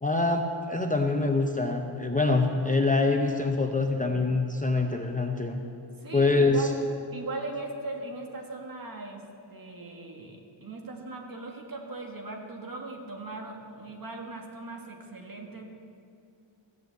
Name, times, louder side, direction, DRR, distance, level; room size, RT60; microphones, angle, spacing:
voice 1, 0.0-5.6 6.1-6.7, left 3 dB, 15° left, 3 dB, 0.7 m, -25 dB
voice 2, 6.0-6.7 7.1-9.2 9.5-15.6, right 2 dB, 45° right, 1 dB, 1.8 m, -39 dB
15.0 x 7.7 x 7.9 m, 2.4 s
wide cardioid pair, 145°, 50 cm